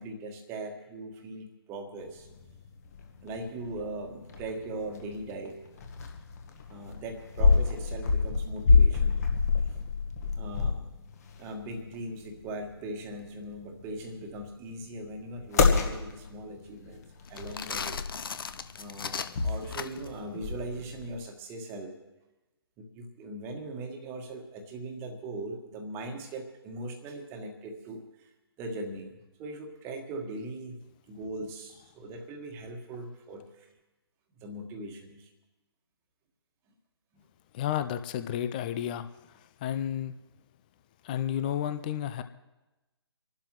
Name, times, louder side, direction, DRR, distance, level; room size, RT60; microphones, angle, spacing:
voice 1, 0.0-2.3 3.2-5.6 6.7-9.2 9.6-9.8 10.4-10.9 11.4-17.0 17.3-18.0 18.8-21.9 22.8-28.3 28.6-29.1 29.4-30.8 31.1-33.7 34.4-35.3, right 2 dB, 15° right, 4 dB, 1.5 m, -40 dB
sound 1, 2.0-21.2, left 4 dB, 35° left, 1.5 m, -29 dB
sound 2, 17.3-20.2, left 6 dB, 55° left, 0.7 m, -37 dB
voice 2, 37.5-40.1 41.0-42.2, left 10 dB, 20° left, 10 dB, 0.4 m, -32 dB
26.5 x 12.0 x 3.1 m, 1.0 s
figure-of-eight pair, 140°, 14 cm